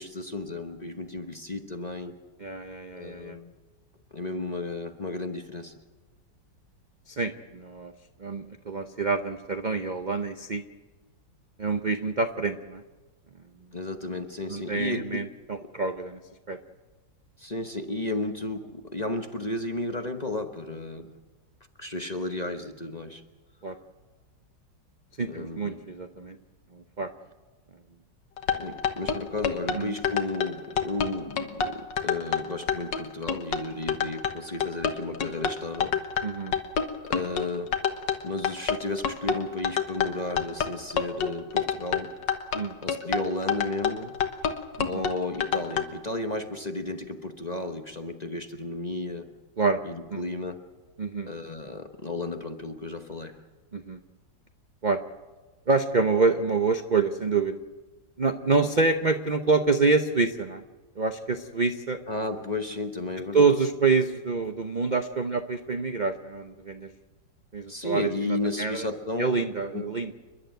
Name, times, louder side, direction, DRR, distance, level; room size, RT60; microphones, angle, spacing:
voice 1, 0.0-2.2 2.9-3.5 4.1-5.7 13.7-15.2 15.6-15.7 17.4-21.1 21.8-23.2 25.2-25.8 28.6-35.9 37.1-37.7 38.2-42.1 42.8-44.1 44.9-49.3 49.8-50.6 51.3-53.3 62.1-63.5 67.7-69.4 69.7-69.9, left 2 dB, 30° left, 6 dB, 0.9 m, -33 dB
voice 2, 2.4-3.4 7.1-7.9 8.2-10.6 11.6-12.8 14.5-16.2 16.5-16.6 23.6-23.7 25.2-26.4 26.7-27.1 29.7-29.9 36.2-36.5 42.5-42.8 44.8-45.0 49.6-49.8 50.1-50.2 51.0-51.3 53.7-54.0 54.8-55.0 55.7-57.6 58.2-60.6 61.0-62.0 63.3-66.9 67.5-68.9 69.2-70.1, right 4 dB, 45° right, 8 dB, 0.5 m, -26 dB
sound 1, 28.4-45.8, left 7 dB, 75° left, 1.9 m, -27 dB
29.5 x 11.5 x 9.1 m, 1.3 s
omnidirectional pair, 2.0 m